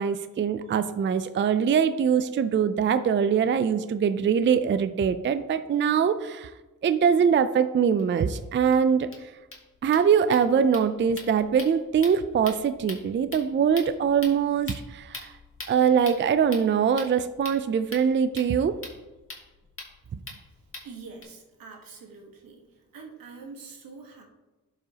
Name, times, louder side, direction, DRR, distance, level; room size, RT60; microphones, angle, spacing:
voice 1, 0.0-6.5 6.8-9.3 9.8-15.3 15.7-18.8, right 7 dB, 35° right, 11 dB, 0.4 m, -23 dB
sound 1, 8.0-8.1 8.3-8.4 8.7-8.8 9.0-21.2, left 2 dB, 40° left, 2.1 m, -44 dB
voice 2, 20.8-22.6 22.9-24.2, right 4 dB, 80° right, 1 dB, 1.5 m, -44 dB
11.5 x 4.9 x 2.9 m, 1.1 s
cardioid pair, 60°, 34 cm